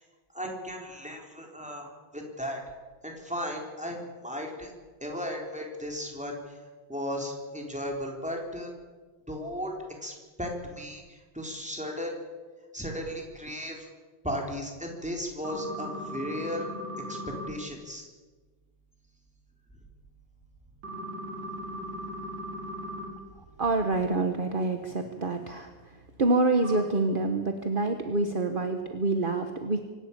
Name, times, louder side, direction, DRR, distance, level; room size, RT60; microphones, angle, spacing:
voice 1, 0.3-2.6 3.0-4.7 5.0-6.5 6.9-8.7 9.3-9.7 10.0-12.2 12.7-13.9 14.2-16.7 17.1-17.2 17.5-18.0, equal, 5° right, 1 dB, 3.9 m, -35 dB
sound 1, 15.4-17.5 20.8-23.1 26.6-26.8, equal, 60° right, 5.4 m, -38 dB
voice 2, 23.6-29.9, right 2 dB, 30° right, 6 dB, 1.0 m, -27 dB
25.0 x 12.5 x 8.7 m, 1.4 s
omnidirectional pair, 2.3 m